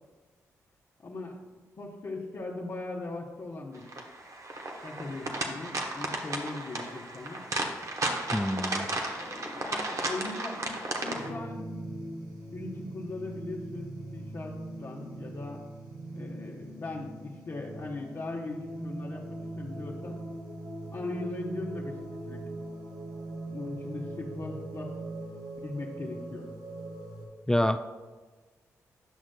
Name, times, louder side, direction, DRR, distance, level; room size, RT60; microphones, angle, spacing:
voice 1, 1.0-1.4 1.8-3.9 4.8-7.4 9.1-11.7 12.5-15.6 16.1-20.2 20.9-22.0 22.3-22.4 23.5-24.9 25.6-26.5, left 2 dB, 50° left, -5 dB, 0.9 m, -39 dB
sound 1, 3.9-11.3, right 2 dB, 50° right, 1.0 m, -34 dB
voice 2, 8.3-8.9 27.5-27.8, left 1 dB, 10° left, 8 dB, 0.4 m, -26 dB
sound 2, 11.1-27.3, right 1 dB, 75° right, 1.4 m, -41 dB
10.0 x 6.1 x 2.2 m, 1.3 s
supercardioid pair, 45°, 7 cm